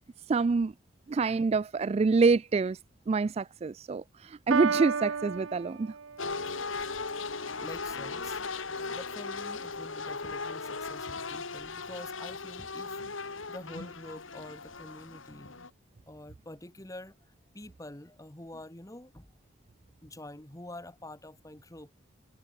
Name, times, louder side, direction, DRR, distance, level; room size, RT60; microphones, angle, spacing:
voice 1, 0.3-0.7 1.1-2.8 3.1-5.9, right 4 dB, 30° right, 0.3 m, -26 dB
Piano, 4.5-6.5, right 5 dB, 90° right, 0.8 m, -32 dB
sound 1, 6.2-15.7, left 4 dB, 85° left, 2.5 m, -38 dB
voice 2, 7.6-15.6 16.1-19.3 20.0-21.9, left 1 dB, 15° left, 1.6 m, -47 dB
head